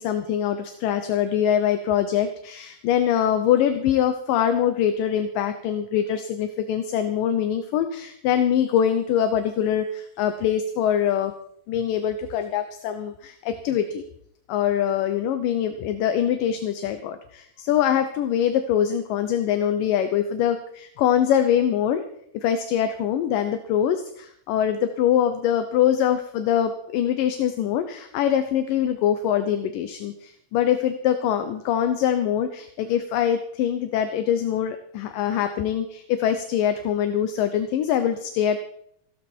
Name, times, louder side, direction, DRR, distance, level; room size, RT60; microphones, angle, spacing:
voice 1, 0.0-11.3 11.7-14.0 14.5-22.0 22.3-38.6, left 9 dB, 70° left, 9 dB, 2.4 m, -23 dB
16.0 x 14.0 x 4.5 m, 0.68 s
omnidirectional pair, 4.3 m